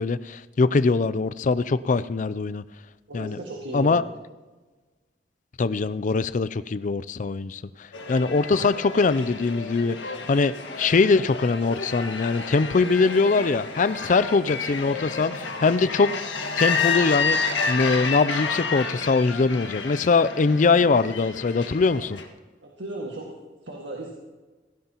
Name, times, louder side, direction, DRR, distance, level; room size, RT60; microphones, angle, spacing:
voice 1, 0.0-2.6 3.1-3.4 3.7-4.0 5.6-16.1 16.6-17.4 17.7-22.2, left 4 dB, 45° left, 16 dB, 0.4 m, -22 dB
voice 2, 3.1-4.1 22.6-23.3 23.6-24.1, right 2 dB, 75° right, -2 dB, 1.9 m, -35 dB
sound 1, 7.9-22.3, left 4 dB, 70° left, 1.7 m, -30 dB
16.5 x 16.0 x 3.0 m, 1.3 s
head